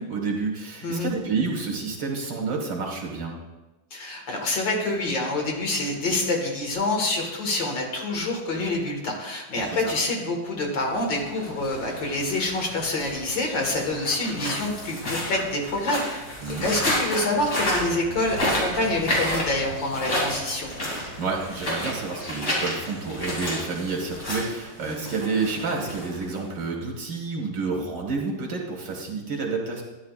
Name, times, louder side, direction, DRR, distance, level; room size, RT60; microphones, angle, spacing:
voice 1, 0.0-3.4 9.6-9.9 16.4-16.7 21.2-29.8, right 4 dB, 70° right, 0 dB, 2.4 m, -29 dB
voice 2, 3.9-20.7 24.9-25.0, left 2 dB, 75° left, 1 dB, 2.4 m, -27 dB
sound 1, 10.9-26.6, left 1 dB, 50° left, 3.4 m, -31 dB
12.5 x 10.0 x 2.4 m, 1.1 s
omnidirectional pair, 2.0 m